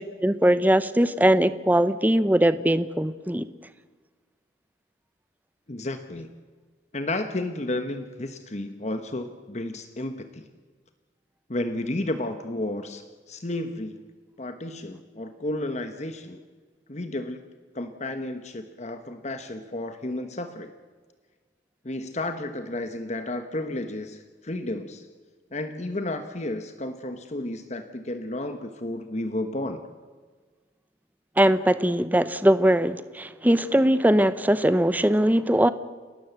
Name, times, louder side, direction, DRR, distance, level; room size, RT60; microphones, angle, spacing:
voice 1, 0.0-3.5 31.4-35.7, right 1 dB, 10° right, 13 dB, 0.8 m, -21 dB
voice 2, 5.7-6.3 6.9-10.4 11.5-14.0 14.4-16.4 16.9-17.4 17.7-20.7 21.8-25.1 25.5-29.8, left 1 dB, 40° left, 8 dB, 1.2 m, -32 dB
29.5 x 13.0 x 8.1 m, 1.4 s
head